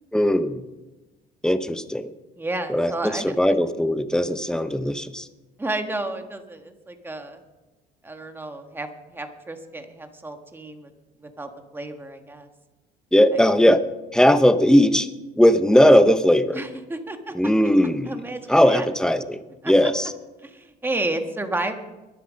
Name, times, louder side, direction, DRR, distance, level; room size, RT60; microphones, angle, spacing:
voice 1, 0.1-0.6 1.4-2.1 2.7-5.3 13.1-13.8 14.1-15.1 15.4-16.6 17.3-18.2 18.5-20.1, equal, 5° left, 11 dB, 0.8 m, -18 dB
voice 2, 2.4-3.3 5.6-7.4 8.0-10.9 11.2-12.5 16.5-17.3 18.1-18.9 19.6-19.9 20.4-21.7, right 2 dB, 15° right, 5 dB, 1.6 m, -31 dB
23.0 x 7.9 x 5.2 m, 1.1 s
cardioid pair, 110°, 17 cm